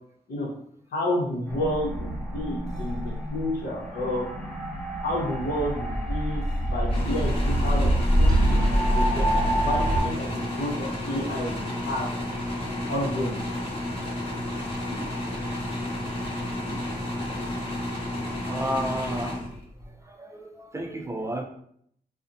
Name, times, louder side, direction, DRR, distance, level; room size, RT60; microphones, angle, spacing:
voice 1, 0.9-4.3 5.0-8.6 8.9-12.1 12.9-13.4, left 1 dB, 75° left, -4 dB, 0.8 m, -30 dB
sound 1, 1.5-10.0, equal, 5° left, 0.8 m, -25 dB
sound 2, 6.9-19.9, left 1 dB, 35° left, 0.9 m, -32 dB
voice 2, 18.5-19.4 20.1-21.4, right 1 dB, 20° right, 3 dB, 0.4 m, -32 dB
2.7 x 2.1 x 2.5 m, 0.67 s
cardioid pair, 65°, 16 cm